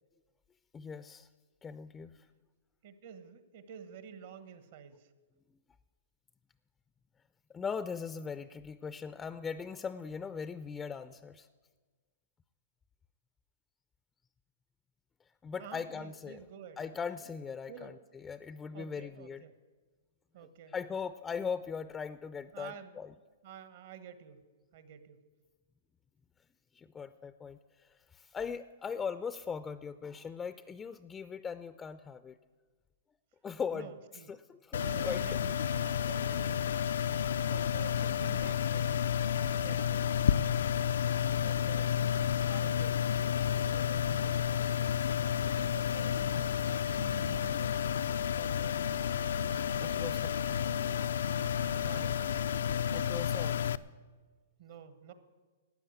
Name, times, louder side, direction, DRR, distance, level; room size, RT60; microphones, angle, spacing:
voice 1, 0.7-1.3 1.6-2.1 7.5-11.5 15.4-16.4 16.8-19.4 20.7-23.1 26.7-32.4 33.4-33.9 34.3-35.2 49.8-50.2 52.9-53.6, left 6 dB, 15° left, 13 dB, 0.4 m, -39 dB
voice 2, 2.8-5.1 15.6-16.8 17.7-17.9 18.7-19.6 20.3-20.7 22.5-23.0 23.4-24.4 24.7-25.2 33.7-34.4 34.8-39.0 39.5-40.1 41.3-43.0 43.6-44.5 45.5-47.8 48.3-49.1 49.7-50.2 51.8-52.2 54.6-55.1, right 8 dB, 60° right, 12 dB, 1.2 m, -50 dB
sound 1, 34.7-53.8, left 9 dB, 75° left, 0.4 m, -31 dB
13.0 x 9.0 x 8.3 m, 1.4 s
hypercardioid pair, 120°, 0 cm